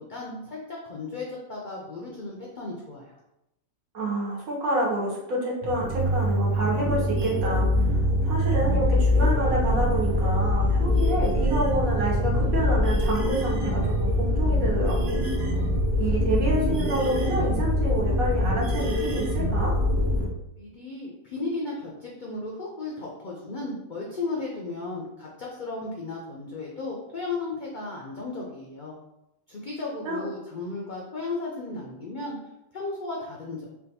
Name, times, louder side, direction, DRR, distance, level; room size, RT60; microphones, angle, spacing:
voice 1, 0.1-3.2 20.6-29.0 29.5-32.4 32.7-33.7, left 3 dB, 80° left, -3 dB, 0.4 m, -35 dB
voice 2, 3.9-15.2 16.0-19.8 30.0-30.2, right 1 dB, 80° right, -4 dB, 1.3 m, -28 dB
sound 1, 5.6-20.3, left 1 dB, 55° right, 0.6 m, -24 dB
3.4 x 2.2 x 2.7 m, 0.87 s
omnidirectional pair, 1.5 m